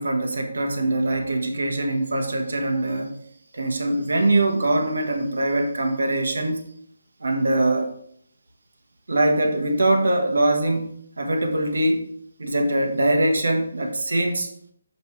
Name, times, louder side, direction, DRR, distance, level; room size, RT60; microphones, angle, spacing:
voice 1, 0.0-3.1 3.5-6.6 7.2-7.9 9.1-10.9 11.2-12.0 12.4-14.5, right 1 dB, 90° right, 4 dB, 1.4 m, -22 dB
6.7 x 5.3 x 3.2 m, 0.65 s
hypercardioid pair, 175°, 0 cm